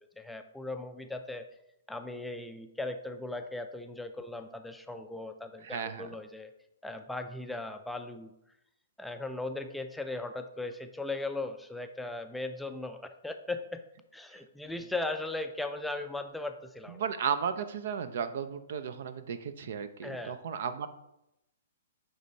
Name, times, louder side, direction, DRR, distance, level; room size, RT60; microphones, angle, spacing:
voice 1, 0.2-1.5 1.9-6.5 6.8-8.3 9.0-13.8 14.1-17.0 20.0-20.4, left 2 dB, 5° left, 6 dB, 0.4 m, -38 dB
voice 2, 5.6-6.1 17.0-20.9, right 7 dB, 60° right, 11 dB, 0.6 m, -34 dB
8.8 x 3.4 x 4.1 m, 0.87 s
figure-of-eight pair, 120°, 0 cm